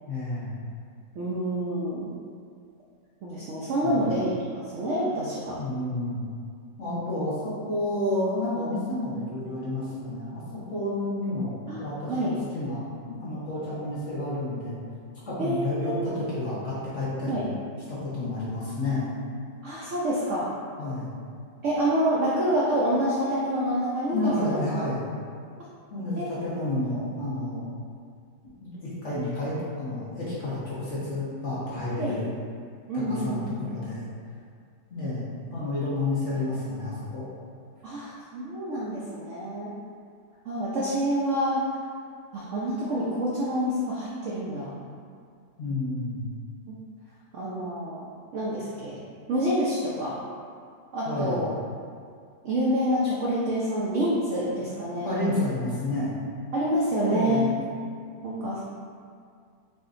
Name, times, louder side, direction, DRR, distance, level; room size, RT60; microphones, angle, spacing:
voice 1, 0.1-0.5 3.8-4.1 5.6-6.2 6.8-10.4 10.7-14.8 15.3-17.4 17.9-19.1 20.8-21.1 24.1-25.1 25.9-27.7 28.6-32.3 32.9-34.0 34.9-37.2 45.6-46.2 51.0-51.4 55.0-56.1 56.9-57.5, left 2 dB, 45° left, -9 dB, 1.3 m, -30 dB
voice 2, 1.1-2.1 3.2-5.6 6.9-7.2 11.7-11.8 12.1-12.3 15.4-16.0 17.3-17.4 19.6-20.5 21.6-24.6 26.1-26.4 32.0-32.2 32.9-33.6 37.8-39.8 40.4-41.6 42.3-44.7 46.7-46.8 47.3-49.0 49.3-50.2 50.9-51.5 52.4-55.1 56.5-57.5 58.2-58.6, equal, 70° right, -6 dB, 0.7 m, -27 dB
6.3 x 2.8 x 2.6 m, 2.2 s
omnidirectional pair, 2.0 m